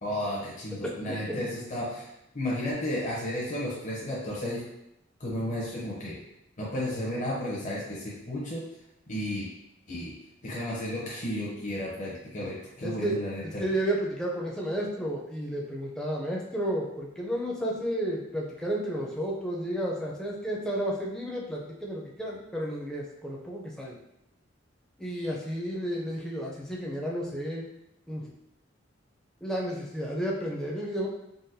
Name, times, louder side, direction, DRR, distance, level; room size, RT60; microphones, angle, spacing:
voice 1, 0.0-4.6 5.2-6.1 6.6-8.6 9.1-9.5 9.9-10.1 10.4-13.6, left 1 dB, 40° left, -6 dB, 0.7 m, -33 dB
voice 2, 12.8-13.2 13.6-24.0 25.0-27.6 28.1-28.2 29.4-31.1, right 1 dB, 5° left, -3 dB, 0.4 m, -32 dB
3.8 x 2.2 x 2.6 m, 0.83 s
head